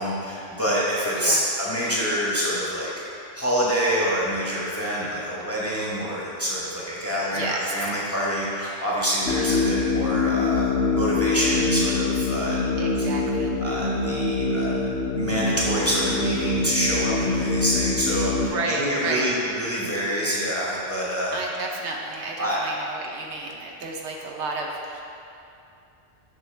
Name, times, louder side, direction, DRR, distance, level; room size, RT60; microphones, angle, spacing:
voice 1, 0.0-2.9 3.3-12.6 13.0-13.1 13.6-14.8 15.2-21.4 22.4-22.6, equal, 15° left, -7 dB, 0.9 m, -26 dB
voice 2, 7.3-7.9 12.8-13.5 18.5-19.3 21.3-25.0, right 2 dB, 70° right, 0 dB, 0.9 m, -31 dB
sound 1, 9.3-18.5, left 3 dB, 85° left, 0.9 m, -24 dB
6.6 x 6.0 x 3.2 m, 2.6 s
omnidirectional pair, 1.2 m